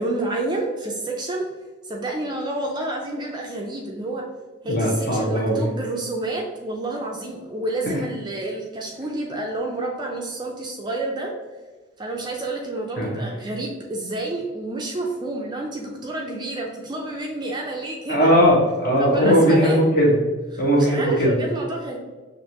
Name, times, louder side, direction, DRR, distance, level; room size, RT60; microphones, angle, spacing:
voice 1, 0.0-1.5 1.9-4.2 4.6-11.3 12.0-18.3 19.0-19.8 20.7-22.0, right 2 dB, 20° right, 0 dB, 0.5 m, -29 dB
voice 2, 4.6-5.7 13.0-13.3 18.1-20.2 20.6-21.4, equal, 50° left, -3 dB, 1.1 m, -18 dB
6.3 x 2.6 x 2.9 m, 1.3 s
head